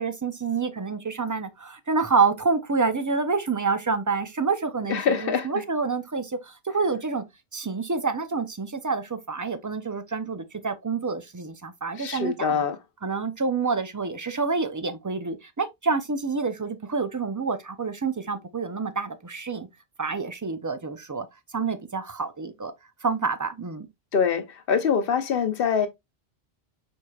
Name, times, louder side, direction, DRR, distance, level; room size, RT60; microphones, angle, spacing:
voice 1, 0.0-7.2 7.5-12.6 13.0-19.7 20.0-21.3 21.5-22.7 23.0-23.9, right 4 dB, 30° right, 0.3 m, -28 dB
voice 2, 4.9-5.6 12.0-12.8 24.1-25.9, left 6 dB, 65° left, 0.9 m, -24 dB
4.7 x 4.3 x 2.3 m
omnidirectional pair, 1.1 m